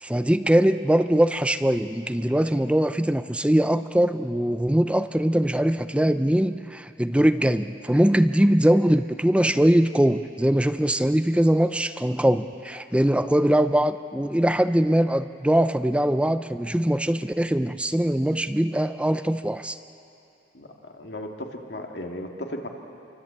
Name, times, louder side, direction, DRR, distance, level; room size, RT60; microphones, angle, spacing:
voice 1, 0.0-19.8, right 1 dB, 5° right, 10 dB, 0.5 m, -22 dB
voice 2, 20.5-22.7, left 1 dB, 75° left, 2 dB, 2.4 m, -36 dB
28.0 x 24.0 x 8.5 m, 2.7 s
head